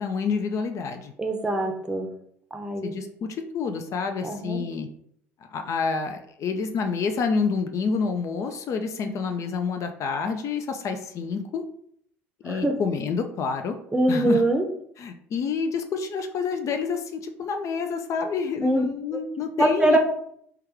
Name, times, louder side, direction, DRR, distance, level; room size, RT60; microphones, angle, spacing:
voice 1, 0.0-1.1 2.8-4.9 5.4-11.6 12.4-13.8 14.1-14.4 15.0-20.0, left 5 dB, 45° left, 6 dB, 0.4 m, -28 dB
voice 2, 1.2-2.1 2.5-2.9 4.2-4.6 12.4-12.8 13.9-14.6 18.6-18.8 19.6-20.0, right 1 dB, 10° right, 3 dB, 0.6 m, -23 dB
3.3 x 2.3 x 3.2 m, 0.68 s
hypercardioid pair, 70°, 7 cm